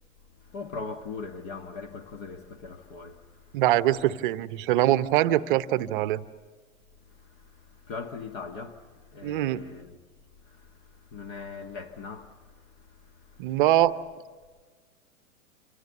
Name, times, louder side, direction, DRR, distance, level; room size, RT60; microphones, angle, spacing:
voice 1, 0.5-3.2 7.9-8.8 9.1-10.0 11.1-12.3, left 4 dB, 35° left, 1.6 m, -39 dB
voice 2, 3.5-6.2 9.2-9.6 13.4-13.9, right 14 dB, 35° right, 0.8 m, -23 dB
28.0 x 26.5 x 7.0 m
figure-of-eight pair, 110°, 43 cm